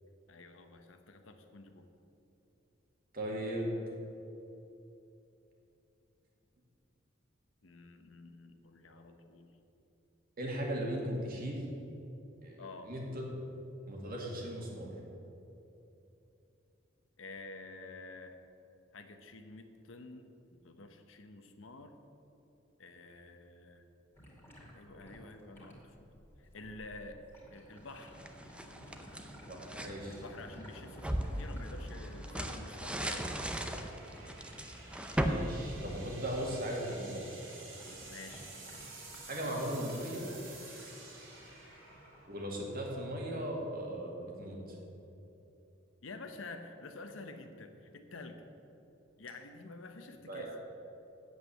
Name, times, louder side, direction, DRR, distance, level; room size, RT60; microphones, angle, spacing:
voice 1, 0.3-1.9 7.6-9.5 12.6-12.9 17.2-18.4 18.9-21.9 22.8-23.9 24.7-26.1 26.4-27.2 27.5-28.1 30.1-33.9 38.1-38.4 46.0-48.4 49.2-50.5, left 3 dB, 80° left, 7 dB, 0.9 m, -49 dB
voice 2, 3.1-3.7 8.9-9.0 10.4-11.7 12.4-13.2 13.9-14.9 29.5-30.2 35.2-37.2 39.3-40.2 42.3-44.6 50.3-50.5, right 1 dB, 50° right, -1 dB, 2.1 m, -38 dB
sound 1, 24.1-36.1 36.4-41.5 41.9-42.2 42.8-43.0, equal, 15° left, 2.4 m, -55 dB
sound 2, 25.3-43.7, right 3 dB, 70° right, 2.7 m, -53 dB
sound 3, 28.0-30.0 30.5-36.5, right 1 dB, 5° right, 0.6 m, -37 dB
8.2 x 8.2 x 7.1 m, 2.9 s
head